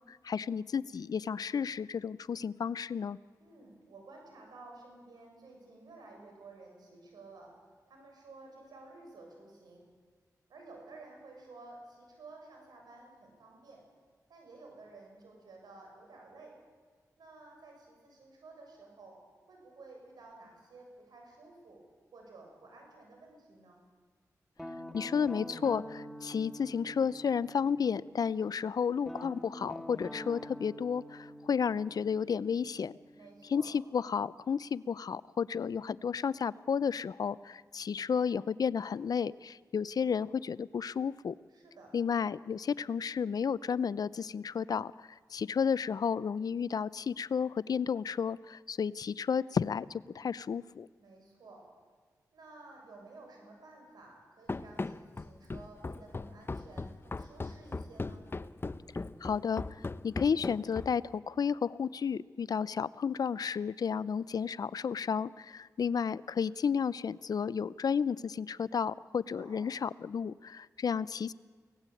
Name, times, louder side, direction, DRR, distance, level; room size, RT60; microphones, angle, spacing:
voice 1, 0.1-3.2 24.9-33.0 33.5-41.3 41.9-50.9 59.2-59.6 60.0-71.3, left 6 dB, 70° left, 19 dB, 0.6 m, -32 dB
voice 2, 3.4-7.6 7.9-9.8 10.5-13.8 14.3-16.6 17.2-19.2 19.5-21.8 22.1-23.8 33.1-33.7 41.5-41.9 51.0-51.7 52.3-58.3 69.3-69.6, right 3 dB, 90° right, 1 dB, 7.0 m, -53 dB
Guitar, 24.6-28.4 29.0-33.8, equal, ahead, 2.2 m, -46 dB
Run, 54.5-61.1, left 3 dB, 35° left, 0.8 m, -38 dB
24.5 x 18.0 x 8.5 m, 1.5 s
cardioid pair, 55°, 7 cm